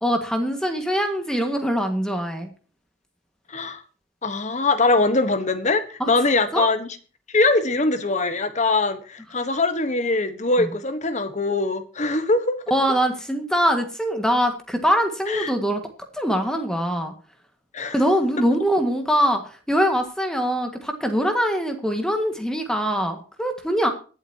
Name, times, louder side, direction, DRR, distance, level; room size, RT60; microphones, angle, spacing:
voice 1, 0.0-2.5 6.0-6.1 6.5-6.7 10.6-10.7 12.7-15.8 16.1-17.1 17.9-23.9, equal, 5° left, 1.7 m, -23 dB
voice 2, 3.5-3.8 4.2-6.9 7.3-12.6 15.3-15.5 17.7-17.9, left 3 dB, 40° left, 1.2 m, -22 dB
24.0 x 8.0 x 2.8 m
head